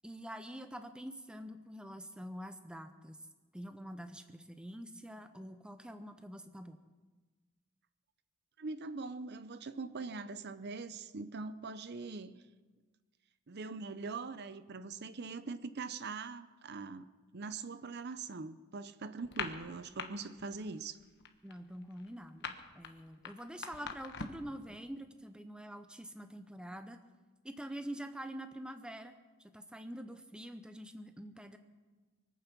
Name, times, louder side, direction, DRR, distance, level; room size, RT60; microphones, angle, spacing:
voice 1, 0.0-3.2 3.5-6.8 21.4-22.5 22.7-27.0 27.4-29.1 29.4-31.6, equal, 5° right, 8 dB, 0.6 m, -46 dB
voice 2, 8.6-12.4 13.5-17.1 17.3-21.0, right 4 dB, 50° right, 12 dB, 0.6 m, -42 dB
sound 1, 19.2-20.1 20.4-20.7 21.0-24.5, left 5 dB, 50° left, 1.2 m, -42 dB
24.0 x 8.9 x 6.1 m, 1.3 s
head